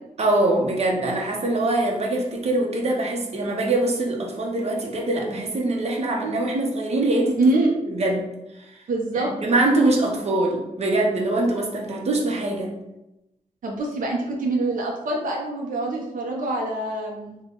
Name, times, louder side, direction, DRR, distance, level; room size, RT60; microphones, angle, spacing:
voice 1, 0.2-7.4 7.9-8.3 9.1-12.7, right 2 dB, 50° right, 0 dB, 0.7 m, -23 dB
voice 2, 7.4-7.7 8.9-9.3 13.6-17.4, right 2 dB, 85° right, -1 dB, 0.6 m, -24 dB
3.4 x 2.2 x 3.7 m, 0.92 s
wide cardioid pair, 100°, 14 cm